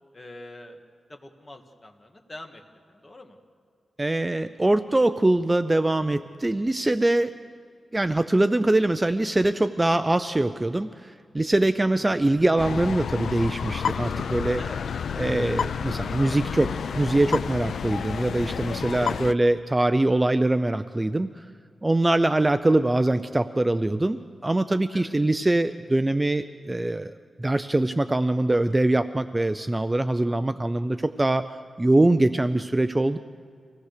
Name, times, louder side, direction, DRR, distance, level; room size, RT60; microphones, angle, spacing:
voice 1, 0.1-0.8 1.1-2.6 2.9-3.4 14.6-14.8 24.9-25.2 30.9-31.2, left 1 dB, 25° left, 3 dB, 1.8 m, -45 dB
voice 2, 4.0-7.4 7.9-14.6 15.2-21.5 21.8-27.1 27.4-33.2, right 2 dB, 15° right, 10 dB, 0.4 m, -23 dB
sound 1, 12.6-19.3, left 7 dB, 90° left, 0.4 m, -30 dB
25.0 x 17.5 x 6.6 m, 2.2 s
wide cardioid pair, 150°, 0 cm